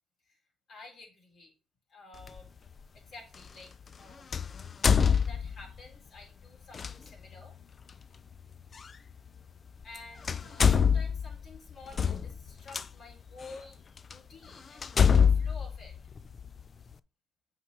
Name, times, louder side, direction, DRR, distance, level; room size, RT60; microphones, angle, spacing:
voice 1, 0.7-1.5 1.9-2.5 2.9-4.3 5.0-7.6 9.8-16.0, left 3 dB, 50° left, -1 dB, 4.2 m, -51 dB
sound 1, 2.2-2.4 4.3-5.8 6.7-6.9 8.8-8.9 9.8-10.0 10.2-12.8 13.5-13.6 14.1-14.2 14.8-16.6, left 7 dB, 35° left, 0.4 m, -25 dB
8.6 x 5.0 x 3.1 m, 0.34 s
cardioid pair, 110°, 0 cm